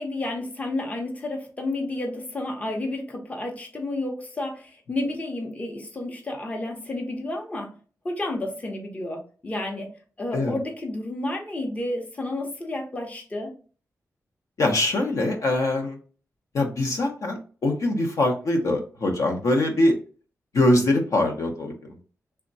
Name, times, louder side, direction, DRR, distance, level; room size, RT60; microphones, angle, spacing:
voice 1, 0.0-7.7 8.0-9.9 10.2-13.5, left 2 dB, 25° left, 2 dB, 0.7 m, -31 dB
voice 2, 14.6-16.0 16.5-19.9 20.5-21.7, left 1 dB, 65° left, 3 dB, 0.8 m, -23 dB
3.4 x 2.1 x 3.9 m, 0.38 s
wide cardioid pair, 135°, 6 cm